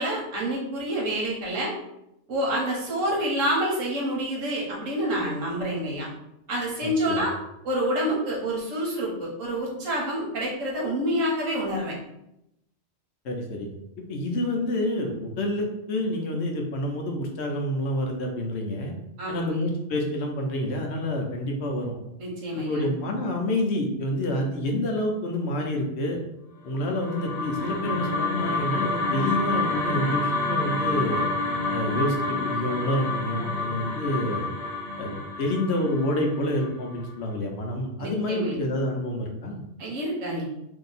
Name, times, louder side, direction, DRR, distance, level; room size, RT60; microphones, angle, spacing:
voice 1, 0.0-1.7 2.3-6.1 6.5-7.3 7.6-11.9 19.2-19.7 22.2-22.9 38.0-38.6 39.8-40.4, equal, 90° right, -2 dB, 1.3 m, -28 dB
voice 2, 6.8-7.2 13.2-13.7 14.1-18.9 19.3-21.9 22.6-26.2 26.6-31.2 31.7-34.5 35.0-35.1 35.4-39.6, left 1 dB, 65° left, 2 dB, 0.9 m, -28 dB
sound 1, 26.7-37.0, left 3 dB, 85° left, 0.3 m, -28 dB
2.8 x 2.7 x 3.9 m, 0.84 s
omnidirectional pair, 1.3 m